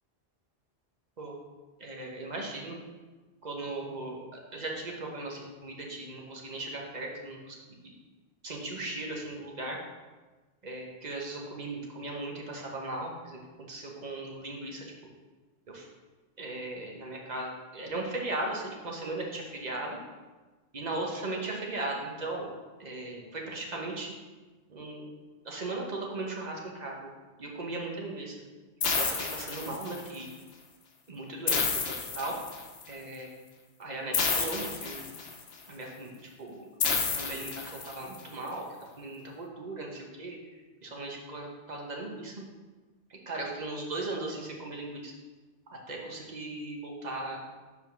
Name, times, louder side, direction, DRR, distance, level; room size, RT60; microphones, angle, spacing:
voice 1, 1.8-2.8 3.4-7.9 8.4-9.8 10.6-13.4 13.7-14.8 15.7-15.9 16.4-20.0 20.7-24.1 24.7-25.0 25.4-27.1 27.4-28.3 29.0-30.3 31.1-32.3 32.9-33.3 33.8-35.2 35.7-36.7 37.1-38.7 39.0-40.4 40.8-42.4 43.1-45.1 45.7-47.5, right 2 dB, 45° right, -1 dB, 1.2 m, -37 dB
sound 1, 28.8-30.2 31.5-32.8 34.1-35.5 36.8-38.2, left 5 dB, 75° left, 1.0 m, -30 dB
5.3 x 4.1 x 5.9 m, 1.3 s
omnidirectional pair, 1.1 m